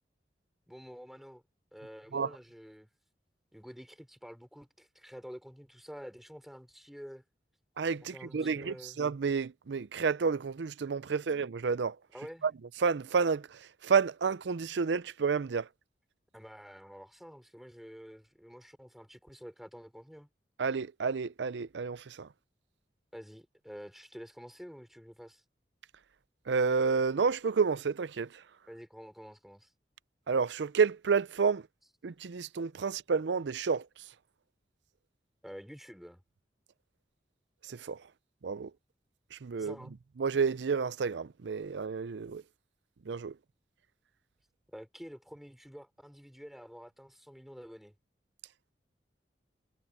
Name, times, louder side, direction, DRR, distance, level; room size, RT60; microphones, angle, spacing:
voice 1, 0.7-1.4 1.7-2.9 3.5-7.2 8.0-9.0 12.1-12.5 16.3-20.3 23.1-25.4 28.7-29.7 35.4-36.2 39.6-40.0 44.7-47.9, equal, ahead, 4.2 m, -49 dB
voice 2, 7.8-12.0 12.4-12.5 12.8-15.7 20.6-22.3 26.5-28.3 30.3-31.6 32.0-33.9 37.7-38.0 38.4-38.7 39.3-39.7 40.2-42.4 43.1-43.3, right 5 dB, 80° right, 0.5 m, -30 dB
head